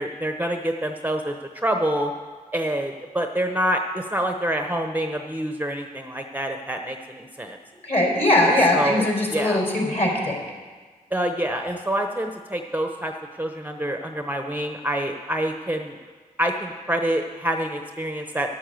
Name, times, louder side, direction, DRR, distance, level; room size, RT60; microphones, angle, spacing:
voice 1, 0.0-2.1 2.5-7.6 8.7-9.6 11.1-13.1 13.4-16.0 16.4-18.5, right 1 dB, 10° right, 4 dB, 0.9 m, -26 dB
voice 2, 7.8-10.4, left 1 dB, 45° left, -1 dB, 4.2 m, -20 dB
11.0 x 8.4 x 7.7 m, 1.5 s
cardioid pair, 50°, 15 cm